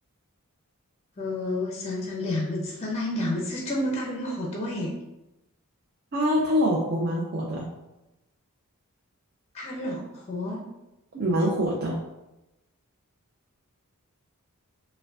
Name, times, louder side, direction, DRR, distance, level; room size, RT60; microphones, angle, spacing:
voice 1, 1.2-4.9 9.5-10.6, left 1 dB, 30° left, -1 dB, 0.5 m, -30 dB
voice 2, 6.1-7.7 11.1-12.0, equal, 45° right, -4 dB, 0.5 m, -24 dB
4.8 x 2.2 x 2.3 m, 0.96 s
head